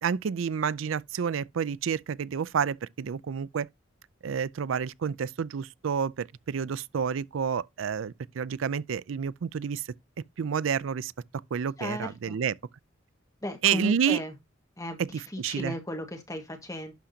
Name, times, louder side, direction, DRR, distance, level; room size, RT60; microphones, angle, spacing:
voice 1, 0.0-3.7 4.2-9.9 10.4-11.1 11.5-12.5 13.6-14.2 15.0-15.7, right 7 dB, 90° right, 0.4 m, -29 dB
voice 2, 11.8-12.4 13.4-14.3 14.8-16.9, left 1 dB, 15° left, 1.6 m, -36 dB
11.5 x 5.0 x 2.7 m
head